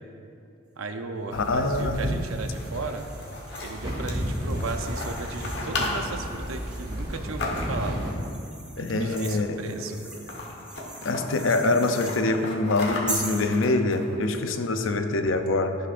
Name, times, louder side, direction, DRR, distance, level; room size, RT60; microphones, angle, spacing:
voice 1, 0.8-3.1 3.6-8.0 8.7-10.0, right 3 dB, 90° right, 6 dB, 0.7 m, -35 dB
voice 2, 1.3-2.2 8.8-9.6 11.0-15.8, left 2 dB, 75° left, 7 dB, 0.6 m, -25 dB
sound 1, 1.3-8.1, equal, 20° right, 2.1 m, -33 dB
sound 2, 1.6-7.1 7.7-12.2 13.1-13.5, right 1 dB, 5° right, 0.8 m, -41 dB
sound 3, 2.4-8.0 9.0-9.5 9.8-9.9 10.1-11.2 11.6-14.3, left 2 dB, 55° left, 1.4 m, -36 dB
16.0 x 6.6 x 2.6 m, 2.6 s
head